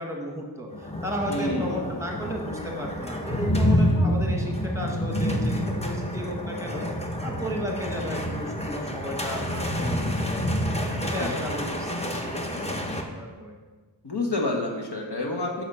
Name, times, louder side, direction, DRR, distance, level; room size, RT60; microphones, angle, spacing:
voice 1, 0.0-6.9 7.2-13.6, equal, 5° right, 0 dB, 1.4 m, -34 dB
sound 1, 0.7-13.0, equal, 15° left, 0.8 m, -28 dB
voice 2, 1.3-2.0 11.2-11.3 14.0-15.6, left 2 dB, 65° left, 1 dB, 1.1 m, -28 dB
7.4 x 4.6 x 5.6 m, 1.3 s
wide cardioid pair, 60°, 43 cm